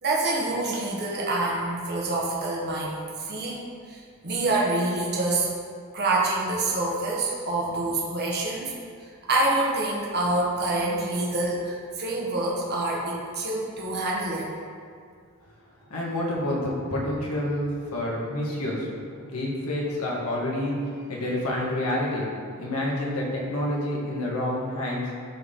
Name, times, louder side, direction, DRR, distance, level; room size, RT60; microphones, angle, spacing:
voice 1, 0.0-5.5 5.9-8.7 9.3-14.5, right 2 dB, 50° right, -4 dB, 1.5 m, -26 dB
voice 2, 15.9-18.9 19.2-20.7 21.1-22.2 22.6-25.1, left 1 dB, 90° left, -3 dB, 1.8 m, -28 dB
12.5 x 4.5 x 3.9 m, 2.2 s
head